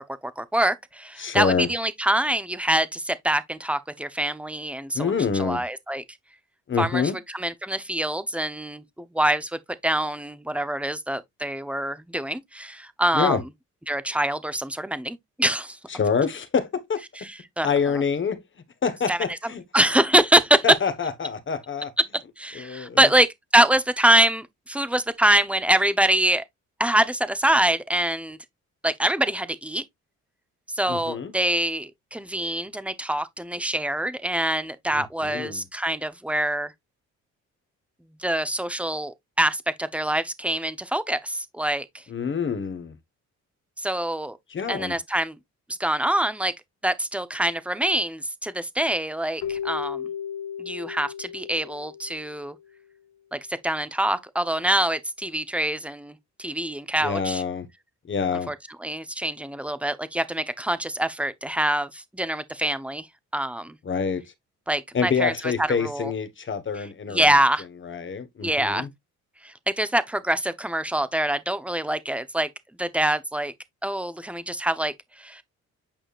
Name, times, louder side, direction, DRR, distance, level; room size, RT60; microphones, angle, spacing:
voice 1, 0.0-6.0 6.8-13.4 13.9-15.8 17.3-17.7 19.1-19.2 19.7-20.6 22.4-26.4 26.8-28.4 28.8-29.8 30.7-36.7 38.2-42.0 43.8-44.4 44.7-45.4 45.8-46.5 46.8-50.1 50.6-52.5 53.3-57.4 58.5-58.6 58.8-63.1 63.3-63.8 64.7-66.1 66.8-67.6 68.4-68.9 69.4-72.5 72.8-73.5 73.8-75.4, right 1 dB, 5° right, 0.9 m, -25 dB
voice 2, 1.2-1.7 4.9-5.6 6.7-7.2 13.1-13.4 15.9-17.0 17.6-18.4 18.8-19.6 20.6-21.9 22.5-23.1 30.9-31.3 34.9-35.6 42.1-43.0 44.5-45.0 57.0-57.7 58.1-58.5 63.8-64.2 64.9-67.4 67.8-68.9, left 6 dB, 40° left, 1.4 m, -26 dB
Keyboard (musical), 49.4-52.7, left 8 dB, 80° left, 1.2 m, -35 dB
8.9 x 5.0 x 2.5 m
cardioid pair, 90°, 30 cm